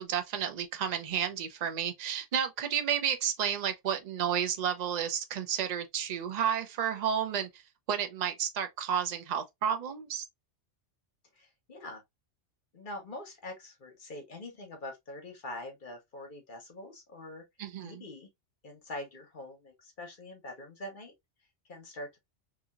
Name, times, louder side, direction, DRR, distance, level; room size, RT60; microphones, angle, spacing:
voice 1, 0.0-7.6 7.9-10.2 17.6-18.0, right 8 dB, 55° right, 0.5 m, -31 dB
voice 2, 11.3-12.0 12.7-17.4 17.8-18.3 18.6-21.1 21.7-22.2, left 1 dB, 50° left, 0.9 m, -44 dB
2.8 x 2.7 x 2.3 m
omnidirectional pair, 1.2 m